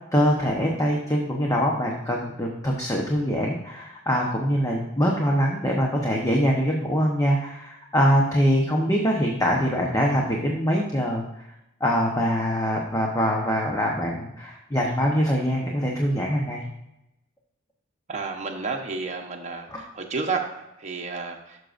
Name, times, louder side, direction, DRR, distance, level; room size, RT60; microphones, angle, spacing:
voice 1, 0.1-11.2 11.8-16.6 19.7-19.8, equal, 15° left, -1 dB, 1.0 m, -23 dB
voice 2, 18.1-21.6, right 4 dB, 35° right, 1 dB, 0.9 m, -31 dB
12.0 x 6.3 x 2.6 m, 0.85 s
head